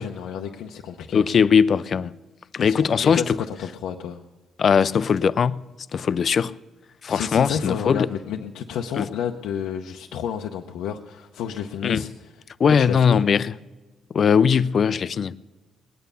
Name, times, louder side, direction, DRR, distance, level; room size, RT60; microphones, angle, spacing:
voice 1, 0.0-1.3 2.6-4.2 7.1-12.4 12.7-13.2, left 8 dB, 90° left, 0.7 m, -31 dB
voice 2, 1.1-2.1 2.5-3.4 4.6-6.5 7.0-8.1 9.0-9.1 11.8-12.0 12.6-13.5 14.1-15.3, left 6 dB, 50° left, 0.4 m, -20 dB
20.0 x 9.2 x 6.9 m
cardioid pair, 90°, 0 cm